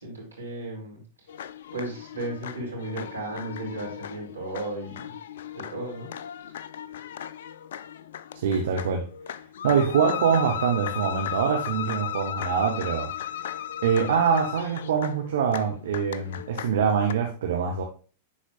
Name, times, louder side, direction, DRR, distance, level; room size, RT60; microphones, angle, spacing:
voice 1, 0.0-1.0 1.7-5.1 5.5-6.1, right 1 dB, 85° right, -4 dB, 3.2 m, -35 dB
sound 1, 1.3-17.1, left 10 dB, 65° left, 0.4 m, -36 dB
voice 2, 8.3-9.1 9.6-13.1 13.8-17.8, right 7 dB, 65° right, 2 dB, 1.0 m, -24 dB
10.5 x 4.2 x 2.4 m, 0.37 s
figure-of-eight pair, 95°, 0 cm